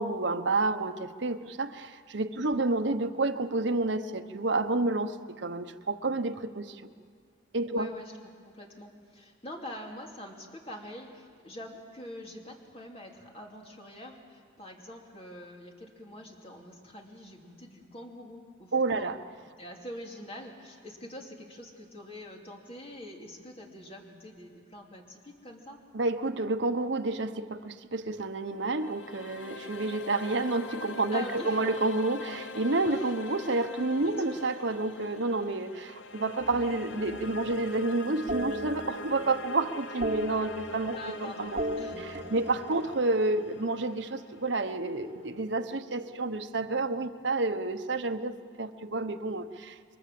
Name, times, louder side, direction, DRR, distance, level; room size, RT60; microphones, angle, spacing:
voice 1, 0.0-6.8 7.5-7.9 18.7-19.2 25.9-41.6 42.0-49.8, right 2 dB, 65° right, 8 dB, 1.0 m, -30 dB
voice 2, 7.7-19.1 19.6-25.8 31.1-31.6 32.8-33.1 34.1-34.4 40.9-41.5 41.8-42.0, left 1 dB, 30° left, 0 dB, 3.0 m, -45 dB
sound 1, 28.3-45.4, left 3 dB, 80° left, 0.9 m, -44 dB
sound 2, 36.4-37.7 38.3-39.4 39.7-41.2 41.4-43.8 45.0-46.7, right 1 dB, 40° right, 2.3 m, -38 dB
29.0 x 23.5 x 7.7 m, 2.1 s
head